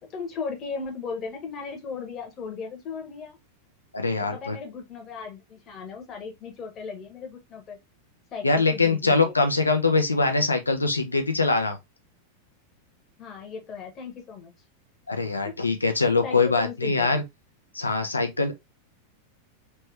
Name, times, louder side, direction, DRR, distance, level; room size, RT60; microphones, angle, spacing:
voice 1, 0.0-3.4 4.2-7.8 8.3-9.3 13.2-14.5 15.4-15.6 16.2-17.2, left 5 dB, 30° left, 1.2 m, -37 dB
voice 2, 3.9-4.6 8.4-11.8 15.1-17.2 17.7-18.5, left 3 dB, 80° left, 0.8 m, -23 dB
3.3 x 3.2 x 3.2 m
figure-of-eight pair, 90°, 0 cm